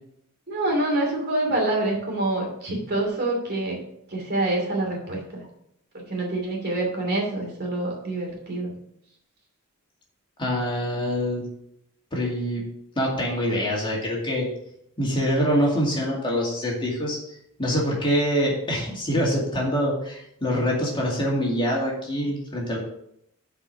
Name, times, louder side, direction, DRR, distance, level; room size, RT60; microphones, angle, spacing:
voice 1, 0.5-3.8 4.1-5.4 5.9-8.7, right 2 dB, 45° right, 0 dB, 2.7 m, -26 dB
voice 2, 10.4-11.5 12.1-12.6 13.0-14.5 15.0-22.8, equal, 20° left, -3 dB, 2.3 m, -25 dB
7.5 x 4.9 x 6.6 m, 0.74 s
head